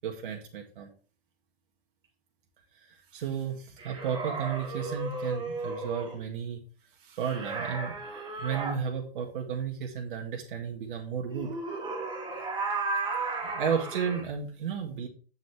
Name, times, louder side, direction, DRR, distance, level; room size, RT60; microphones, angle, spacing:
voice 1, 0.0-0.9 2.9-6.6 7.0-7.9 8.4-11.6 13.4-15.1, right 7 dB, 60° right, 2 dB, 1.8 m, -33 dB
sound 1, 3.8-6.2 7.2-8.8 11.3-14.2, right 3 dB, 15° right, 2.2 m, -34 dB
8.0 x 7.6 x 3.4 m, 0.38 s
hypercardioid pair, 120°, 30 cm